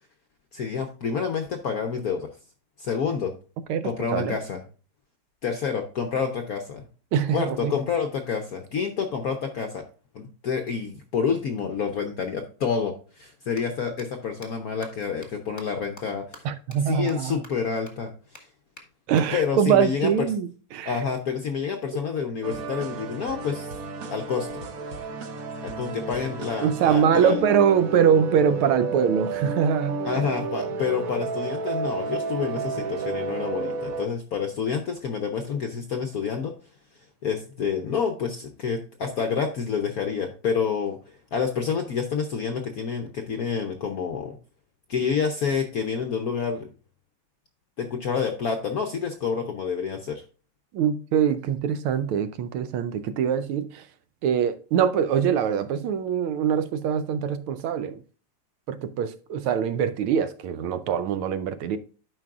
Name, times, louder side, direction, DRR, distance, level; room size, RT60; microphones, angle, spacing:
voice 1, 0.5-2.3 2.8-3.3 3.8-4.6 5.4-6.9 7.3-9.8 10.1-16.5 16.8-18.1 19.3-20.3 20.8-23.7 24.1-24.6 25.6-27.4 30.0-36.5 37.2-41.0 41.3-44.4 44.9-46.7 47.8-50.2, left 6 dB, 65° left, 0.9 m, -28 dB
voice 2, 3.7-4.4 7.1-7.7 16.4-17.4 19.1-21.0 26.6-30.0 50.7-53.8 54.2-58.0 58.7-61.8, right 8 dB, 80° right, 1.5 m, -23 dB
sound 1, 13.6-13.7 14.0-14.1 14.4-14.5 14.8-14.9 15.2-15.3 15.6-15.7 16.0-16.1 16.3-16.4 16.7-16.8 17.1-17.2 17.4-17.5 17.9-18.0 18.3-18.4 18.8-18.9 19.2-19.3 20.9-21.9, left 1 dB, 10° left, 0.9 m, -46 dB
sound 2, 22.4-34.1, right 3 dB, 55° right, 1.0 m, -32 dB
12.0 x 5.3 x 2.4 m
omnidirectional pair, 2.4 m